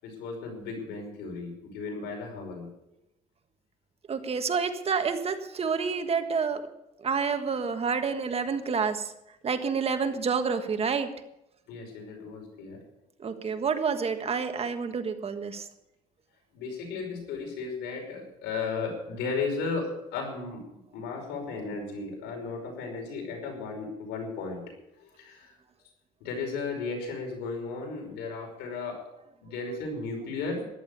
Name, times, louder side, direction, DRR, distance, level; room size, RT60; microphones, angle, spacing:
voice 1, 0.0-2.7 11.7-12.8 16.5-24.6 24.9-25.6 26.2-29.0 29.4-30.6, left 4 dB, 90° left, 2 dB, 5.3 m, -35 dB
voice 2, 4.1-6.7 7.0-9.1 9.4-11.1 13.2-15.7, right 5 dB, 35° right, 8 dB, 1.5 m, -28 dB
14.0 x 11.0 x 6.8 m, 0.85 s
cardioid pair, 110°, 17 cm